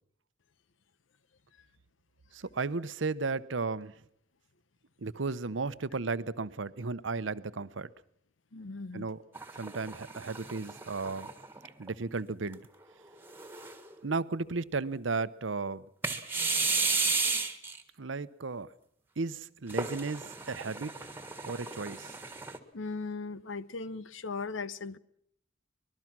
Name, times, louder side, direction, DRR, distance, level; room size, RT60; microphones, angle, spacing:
voice 1, 2.3-4.0 5.0-7.9 8.9-9.2 9.6-11.3 11.8-12.6 14.0-15.9 18.0-18.7 19.2-20.9 21.4-22.2, right 4 dB, 80° right, 0.8 m, -34 dB
voice 2, 8.5-9.1 22.7-25.0, left 4 dB, 90° left, 0.9 m, -38 dB
sound 1, 9.3-11.9 12.5-12.6 13.3-13.9 16.0-17.8 19.7-22.6, right 4 dB, 10° right, 1.6 m, -33 dB
25.0 x 21.0 x 6.1 m
head